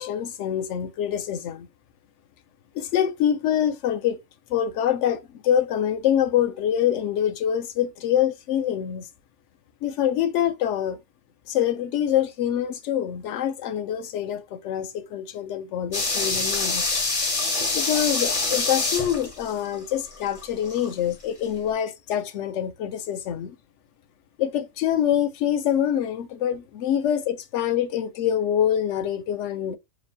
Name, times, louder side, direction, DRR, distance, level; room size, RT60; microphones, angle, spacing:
voice 1, 0.0-1.7 2.7-4.2 4.5-9.1 9.8-11.0 11.5-17.0 17.7-23.6 24.4-29.8, left 10 dB, 75° left, 0.9 m, -25 dB
sound 1, 15.9-20.9 21.2-21.3, left 3 dB, 35° left, 0.6 m, -26 dB
5.2 x 2.3 x 2.6 m
omnidirectional pair, 1.2 m